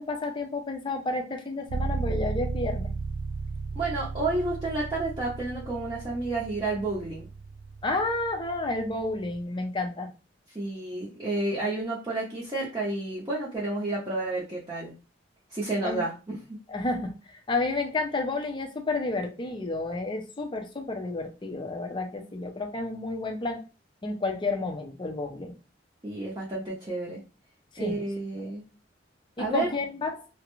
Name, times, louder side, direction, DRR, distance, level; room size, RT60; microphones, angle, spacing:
voice 1, 0.0-2.9 7.8-10.1 15.8-16.0 16.7-23.6 24.0-25.5 27.7-27.9 29.4-30.3, left 2 dB, 25° left, 3 dB, 0.5 m, -31 dB
sound 1, 1.7-9.4, right 4 dB, 75° right, 0.3 m, -35 dB
voice 2, 3.7-7.3 10.5-14.9 15.5-16.6 26.0-27.2 27.8-28.6 29.4-29.7, right 2 dB, 20° right, -7 dB, 0.6 m, -30 dB
2.4 x 2.1 x 3.0 m, 0.31 s
head